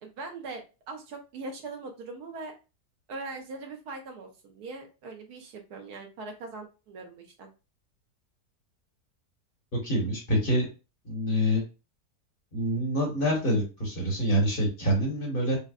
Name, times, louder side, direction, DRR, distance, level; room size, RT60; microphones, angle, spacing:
voice 1, 0.0-2.5 3.1-7.5, right 3 dB, 80° right, 4 dB, 1.4 m, -41 dB
voice 2, 9.8-10.7 11.0-11.6 12.5-15.6, equal, 35° left, -1 dB, 1.5 m, -26 dB
5.0 x 2.2 x 2.4 m, 0.30 s
omnidirectional pair, 1.7 m